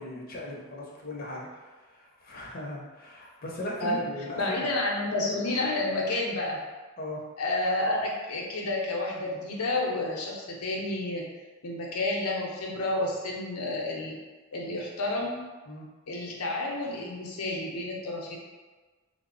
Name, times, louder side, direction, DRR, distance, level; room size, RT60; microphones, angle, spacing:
voice 1, 0.0-4.7 7.0-7.2 15.7-15.9, left 1 dB, 40° left, -3 dB, 0.7 m, -38 dB
voice 2, 4.4-6.6 7.4-11.3 11.6-14.2 14.5-15.4 16.1-18.4, left 2 dB, 80° left, -2 dB, 0.7 m, -30 dB
3.2 x 2.0 x 3.9 m, 1.3 s
head